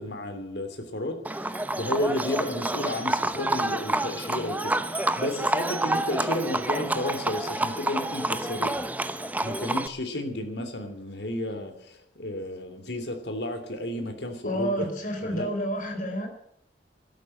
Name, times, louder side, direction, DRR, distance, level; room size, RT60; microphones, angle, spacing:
voice 1, 0.0-8.8 9.4-14.9 15.2-15.5, left 1 dB, 65° left, 7 dB, 3.0 m, -32 dB
Livestock farm animals working animals, 1.2-9.9, right 2 dB, 10° right, 0.8 m, -28 dB
voice 2, 14.4-16.3, equal, 45° left, 4 dB, 4.4 m, -29 dB
12.5 x 12.5 x 8.6 m, 0.73 s
head